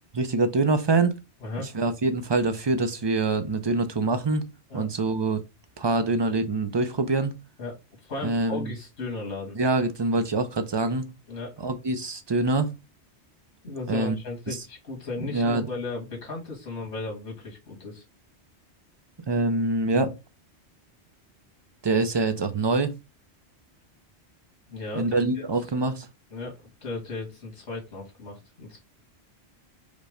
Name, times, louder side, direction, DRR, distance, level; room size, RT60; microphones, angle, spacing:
voice 1, 0.1-1.1 1.7-4.4 4.7-5.4 5.8-7.3 8.2-8.7 9.5-11.1 11.6-12.7 13.9-14.1 14.5-14.6 15.3-15.7 19.3-20.1 21.8-22.9 24.9-26.1, right 3 dB, 40° right, 0.4 m, -25 dB
voice 2, 1.4-1.8 4.7-4.9 7.6-9.6 11.3-11.6 13.6-18.0 24.7-25.4 26.3-28.8, left 3 dB, 85° left, 2.2 m, -36 dB
5.1 x 2.1 x 4.9 m
omnidirectional pair, 1.1 m